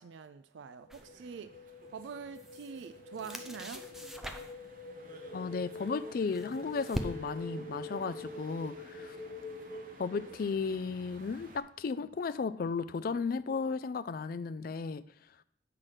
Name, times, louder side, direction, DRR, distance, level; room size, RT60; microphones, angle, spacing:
voice 1, 0.0-1.5 1.9-3.8, right 6 dB, 70° right, 0.4 m, -45 dB
sound 1, 0.7-10.6, left 1 dB, 30° left, 2.0 m, -46 dB
sound 2, 0.9-1.1 2.1-2.9 3.2-4.7 5.9-7.5, equal, ahead, 0.5 m, -41 dB
sound 3, 0.9-11.6, right 1 dB, 45° right, 1.0 m, -54 dB
voice 2, 5.3-9.2 10.0-15.0, left 5 dB, 50° left, 0.3 m, -34 dB
7.6 x 5.8 x 4.9 m
head